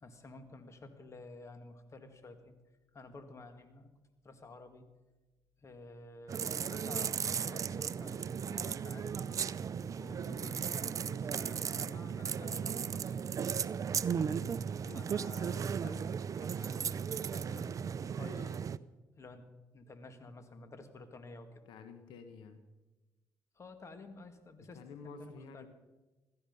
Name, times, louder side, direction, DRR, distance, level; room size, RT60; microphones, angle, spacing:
voice 1, 0.0-2.5 2.9-3.9 4.2-4.8 5.6-9.1 10.0-13.1 14.1-14.6 14.9-16.0 16.4-17.8 18.1-18.6 19.2-19.4 19.7-21.6 23.6-25.7, left 3 dB, 40° left, 8 dB, 2.0 m, -52 dB
sound 1, 6.3-18.8, right 7 dB, 45° right, 0.5 m, -36 dB
voice 2, 10.3-10.7 14.8-15.1 21.7-22.6 24.6-25.7, left 5 dB, 85° left, 8 dB, 1.3 m, -51 dB
16.0 x 14.0 x 5.5 m, 1.1 s
cardioid pair, 80°, 8 cm